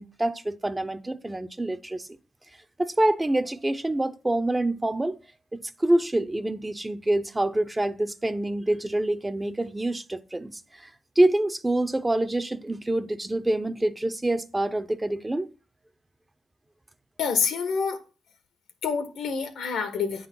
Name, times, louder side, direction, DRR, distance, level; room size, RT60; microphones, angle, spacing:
voice 1, 0.0-2.1 2.8-5.2 5.5-10.9 11.2-15.5, right 1 dB, 20° right, 0.6 m, -26 dB
voice 2, 17.2-18.0 18.8-20.3, left 6 dB, 85° left, 1.3 m, -27 dB
9.2 x 3.9 x 6.0 m
cardioid pair, 60°, 0 cm